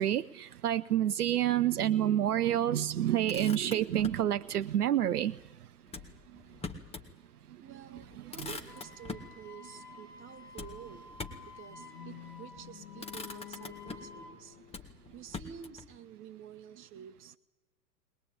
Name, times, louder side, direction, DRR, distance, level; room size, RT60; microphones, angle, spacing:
voice 1, 0.0-5.3, right 11 dB, 65° right, 13 dB, 0.7 m, -28 dB
Motor vehicle (road), 3.0-4.3 5.9-7.1 7.5-7.6 7.9-9.3 10.6-11.6 12.4-12.7 13.0-14.2 14.7-15.9, left 4 dB, 10° left, 1.8 m, -44 dB
voice 2, 7.6-11.1 11.4-17.4, right 8 dB, 25° right, 7 dB, 1.5 m, -50 dB
Wind instrument woodwind instrument, 8.7-14.3, left 4 dB, 65° left, 6.5 m, -52 dB
sound 1, 11.6-15.8, left 15 dB, 30° left, 0.8 m, -51 dB
21.0 x 21.0 x 9.0 m, 1.1 s
figure-of-eight pair, 100°, 49 cm